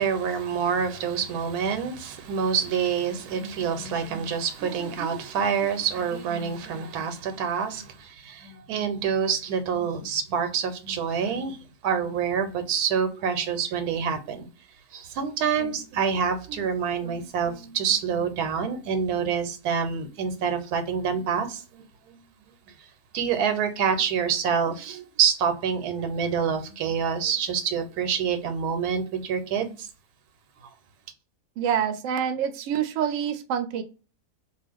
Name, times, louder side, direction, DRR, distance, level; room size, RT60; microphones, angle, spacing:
voice 1, 0.0-14.5 14.9-22.2 23.1-29.9, right 7 dB, 90° right, 1.1 m, -27 dB
voice 2, 31.6-33.8, right 8 dB, 70° right, 0.8 m, -26 dB
2.4 x 2.3 x 3.4 m
omnidirectional pair, 1.6 m